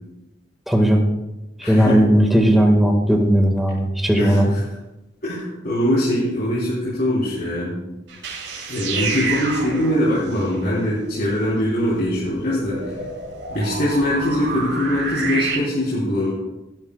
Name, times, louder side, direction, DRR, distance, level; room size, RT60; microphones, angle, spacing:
voice 1, 0.7-1.0 1.6-4.5, equal, ahead, 2 dB, 1.9 m, -16 dB
voice 2, 1.6-2.0 4.2-4.6 5.2-7.8 8.7-12.9 13.5-16.3, left 1 dB, 60° left, -8 dB, 3.7 m, -22 dB
sound 1, 8.1-15.6, right 3 dB, 80° right, 4.0 m, -30 dB
16.5 x 12.0 x 2.4 m, 0.98 s
head